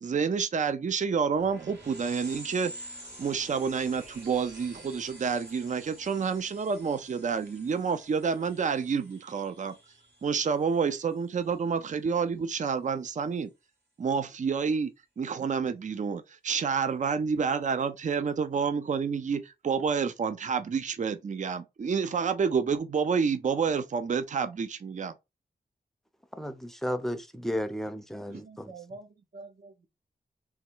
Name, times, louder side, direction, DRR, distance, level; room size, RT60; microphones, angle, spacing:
voice 1, 0.0-2.7 3.2-9.7 10.2-13.5 14.0-14.9 15.2-25.1, right 6 dB, 45° right, 0.5 m, -29 dB
sound 1, 1.4-11.5, right 1 dB, 85° right, 2.3 m, -48 dB
voice 2, 26.4-28.7, equal, ahead, 0.6 m, -33 dB
voice 3, 28.3-29.9, right 3 dB, 65° right, 0.9 m, -46 dB
3.5 x 3.1 x 4.4 m
wide cardioid pair, 135°, 17 cm